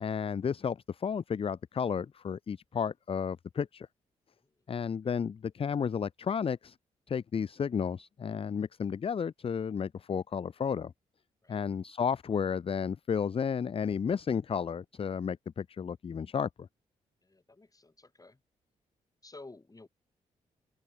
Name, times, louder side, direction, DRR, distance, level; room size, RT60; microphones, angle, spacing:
voice 1, 0.0-3.9 4.7-6.8 7.1-10.9 11.5-16.7, left 7 dB, 40° left, 0.5 m, -32 dB
voice 2, 17.2-18.4 19.2-19.9, left 2 dB, 25° left, 2.9 m, -52 dB
open air
hypercardioid pair, 45°, 15 cm